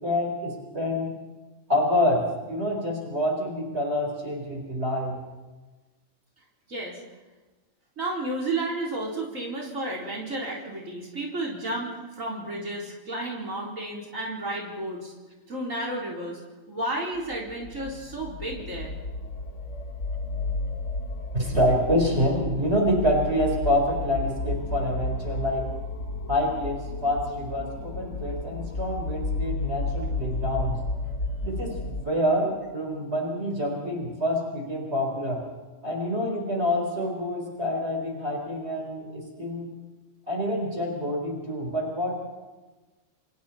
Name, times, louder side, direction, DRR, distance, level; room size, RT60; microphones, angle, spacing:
voice 1, 0.0-1.1 1.7-5.2 21.3-25.7 26.3-30.8 31.4-35.4 35.8-39.7 40.3-42.1, equal, 55° right, 0 dB, 4.7 m, -27 dB
voice 2, 8.0-15.1 15.5-16.4 16.7-18.9, right 2 dB, 80° right, -3 dB, 4.6 m, -32 dB
sound 1, 17.2-32.1, left 2 dB, 65° left, 1.5 m, -32 dB
28.5 x 28.0 x 4.4 m, 1.2 s
omnidirectional pair, 1.3 m